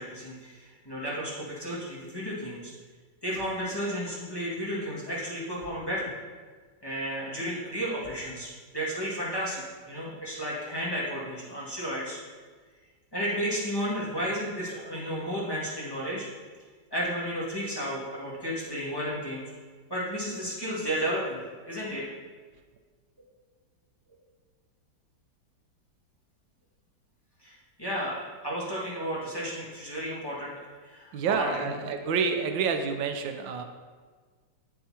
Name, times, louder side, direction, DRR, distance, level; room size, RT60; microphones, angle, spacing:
voice 1, 0.0-2.7 3.2-6.1 6.8-12.2 13.1-16.3 16.9-19.5 19.9-21.4 21.7-22.0 27.4-27.5 27.8-30.5 30.8-31.7, equal, 15° left, -8 dB, 1.9 m, -33 dB
voice 2, 31.1-33.6, right 5 dB, 85° right, 6 dB, 1.4 m, -28 dB
8.5 x 8.0 x 2.9 m, 1.5 s
omnidirectional pair, 2.0 m